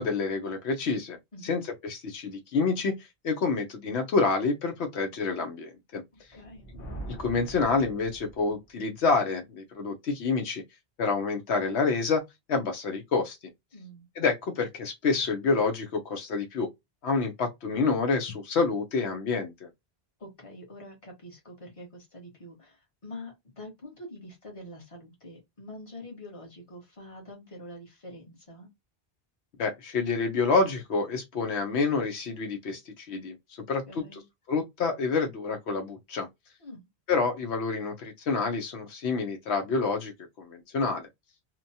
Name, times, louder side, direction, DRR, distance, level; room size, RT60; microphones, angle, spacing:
voice 1, 0.0-1.2 1.4-2.9 3.2-6.0 7.2-10.6 11.0-12.2 12.5-13.4 14.2-16.7 17.0-19.7 29.6-33.3 33.7-34.2 34.5-36.3 37.1-40.1 40.4-41.1, left 4 dB, 80° left, 0.9 m, -28 dB
Thunder, 6.3-8.7, right 1 dB, 60° left, 1.2 m, -43 dB
voice 2, 6.3-6.7 13.7-14.1 20.2-28.7 33.9-34.2 36.6-36.9, left 1 dB, 30° left, 1.2 m, -45 dB
2.9 x 2.2 x 2.6 m
omnidirectional pair, 1.1 m